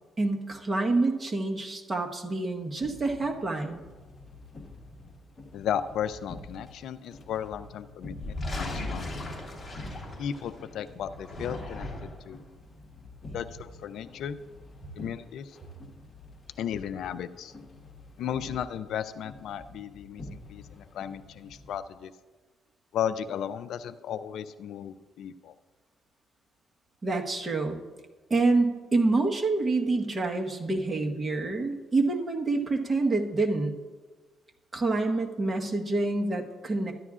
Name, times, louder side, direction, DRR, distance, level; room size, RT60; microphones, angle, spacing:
voice 1, 0.2-3.8 27.0-27.8 28.3-33.7 34.7-36.9, right 3 dB, 30° right, 2 dB, 1.2 m, -27 dB
sound 1, 2.8-21.8, left 2 dB, 40° left, 1.4 m, -48 dB
voice 2, 5.5-9.1 10.2-12.4 13.3-14.4 14.9-15.6 16.6-17.5 18.2-22.1 22.9-25.5, left 9 dB, 75° left, 13 dB, 0.4 m, -35 dB
sound 2, 8.1-10.6 11.1-12.3, left 2 dB, 15° left, 3.4 m, -36 dB
13.5 x 10.5 x 2.4 m, 1.3 s
cardioid pair, 90°, 0 cm